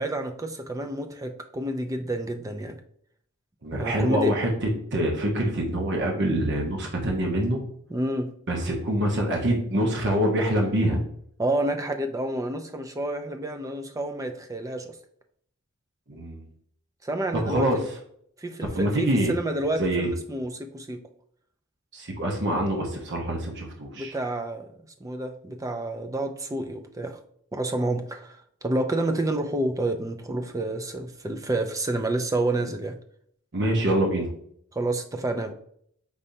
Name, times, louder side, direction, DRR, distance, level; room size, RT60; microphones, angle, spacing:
voice 1, 0.0-2.8 3.8-4.3 7.9-8.3 11.4-15.0 17.0-17.8 18.4-21.0 24.0-24.7 25.0-27.2 27.5-33.0 34.7-35.5, right 1 dB, 15° right, 7 dB, 0.4 m, -29 dB
voice 2, 3.6-7.6 8.5-11.0 16.1-16.4 17.3-17.8 18.7-19.3 19.8-20.1 21.9-24.1 33.5-34.3, right 1 dB, 55° right, 0 dB, 1.0 m, -25 dB
5.4 x 3.3 x 2.7 m, 0.65 s
head